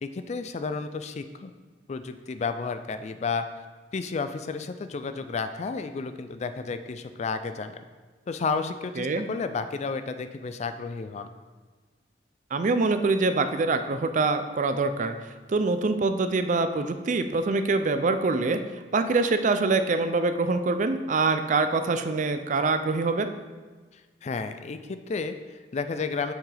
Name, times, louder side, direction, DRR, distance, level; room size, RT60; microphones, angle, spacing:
voice 1, 0.0-1.5 1.9-3.5 3.9-7.8 8.3-11.3 24.2-26.3, left 4 dB, 35° left, 9 dB, 0.3 m, -32 dB
voice 2, 9.0-9.3 12.5-18.6 18.9-23.3, right 3 dB, 40° right, 9 dB, 0.4 m, -25 dB
7.1 x 5.8 x 3.4 m, 1.4 s
head